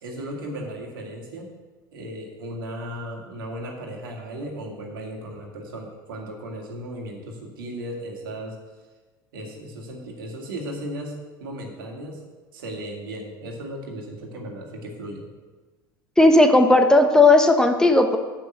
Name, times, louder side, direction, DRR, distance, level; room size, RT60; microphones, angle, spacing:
voice 1, 0.0-1.5 1.9-8.6 9.3-12.2 12.5-15.3, right 1 dB, 80° right, 1 dB, 2.0 m, -36 dB
voice 2, 16.2-18.2, left 2 dB, 5° left, 6 dB, 1.0 m, -15 dB
7.8 x 6.2 x 7.9 m, 1.3 s
hypercardioid pair, 80°, 11 cm